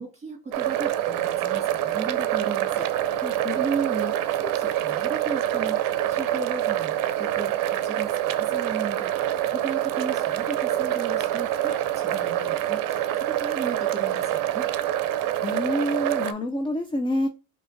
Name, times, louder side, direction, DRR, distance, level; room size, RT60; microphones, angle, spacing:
voice 1, 0.0-2.9 3.5-14.7, right 4 dB, 20° right, 2.0 m, -35 dB
sound 1, 0.5-16.3, right 12 dB, 65° right, 0.5 m, -26 dB
voice 2, 3.2-3.6 15.4-17.3, left 1 dB, 15° left, 0.4 m, -27 dB
4.2 x 2.9 x 2.6 m
cardioid pair, 95°, 36 cm